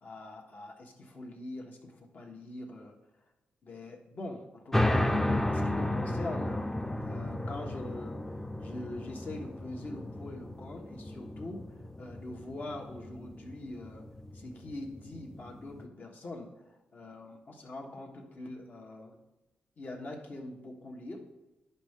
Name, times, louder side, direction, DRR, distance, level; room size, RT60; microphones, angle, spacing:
voice 1, 0.0-3.0 3.6-8.2 8.6-14.1 14.3-19.2 19.8-21.3, left 2 dB, 50° left, 1 dB, 1.3 m, -43 dB
sound 1, 4.7-15.8, left 1 dB, 10° left, 0.6 m, -33 dB
10.0 x 5.5 x 3.6 m, 1.1 s
cardioid pair, 75°, 4 cm